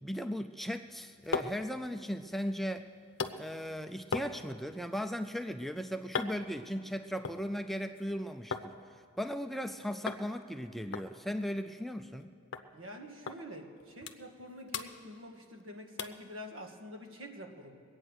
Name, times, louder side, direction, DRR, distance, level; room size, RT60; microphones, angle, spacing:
voice 1, 0.0-2.9 3.4-8.7 9.2-12.3, equal, ahead, 7 dB, 0.3 m, -37 dB
sound 1, 0.8-8.7 9.0-9.7 10.1-10.3 10.5-10.6 10.9-12.2 12.5-12.7 13.3-13.4 13.8-14.4 14.7-15.6 16.0-16.3 16.8-16.9, left 4 dB, 60° left, 0.7 m, -41 dB
voice 2, 12.7-17.8, equal, 75° right, 4 dB, 1.6 m, -47 dB
22.0 x 8.8 x 6.4 m, 2.3 s
head